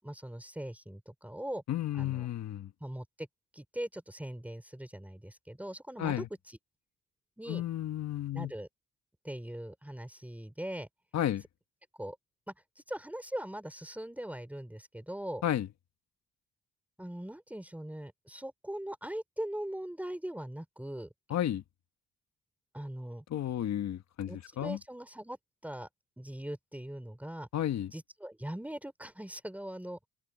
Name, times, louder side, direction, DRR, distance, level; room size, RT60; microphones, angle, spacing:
voice 1, 0.0-1.6 1.9-2.3 2.8-3.3 3.5-6.6 7.4-7.6 8.3-8.7 9.2-10.9 12.0-12.2 12.5-15.4 17.0-21.1 22.7-23.2 24.3-25.9 26.2-27.5 27.9-30.1, right 1 dB, 5° right, 3.8 m, -41 dB
voice 2, 1.7-2.7 6.0-6.3 7.5-8.5 11.1-11.4 15.4-15.7 21.3-21.6 23.3-24.3 24.6-24.8 27.5-27.9, left 11 dB, 65° left, 1.4 m, -32 dB
cardioid pair, 90°, 30 cm